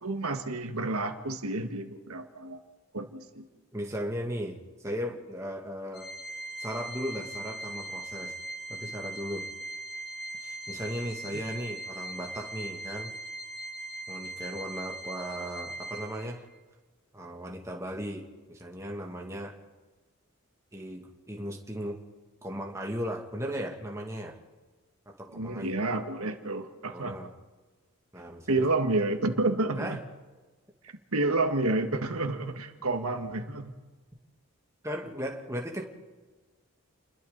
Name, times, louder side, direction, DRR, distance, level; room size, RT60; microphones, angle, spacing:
voice 1, 0.0-2.6 2.9-3.5 11.3-11.4 25.3-27.2 28.5-30.0 31.1-33.7, right 2 dB, 85° right, 6 dB, 1.6 m, -30 dB
voice 2, 3.7-6.1 6.6-8.3 8.7-9.5 10.3-13.1 14.1-16.4 17.1-19.6 20.7-22.0 22.4-24.4 25.1-25.7 26.9-27.3 28.1-28.6 29.8-30.0 34.8-35.8, equal, 15° right, 1 dB, 2.3 m, -37 dB
Organ, 5.9-16.6, right 2 dB, 45° left, 1.4 m, -40 dB
29.5 x 21.5 x 4.1 m, 1.3 s
head